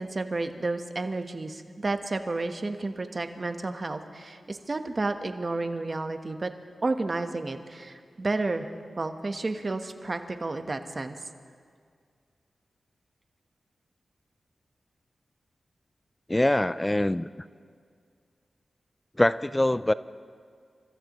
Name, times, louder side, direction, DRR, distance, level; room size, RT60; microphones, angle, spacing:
voice 1, 0.0-6.5 6.8-8.7 9.0-11.2, right 2 dB, 45° right, 7 dB, 1.2 m, -31 dB
voice 2, 16.3-17.3 19.2-19.9, left 1 dB, 20° left, 16 dB, 0.4 m, -23 dB
29.5 x 14.0 x 3.1 m, 2.1 s
cardioid pair, 45°, 0 cm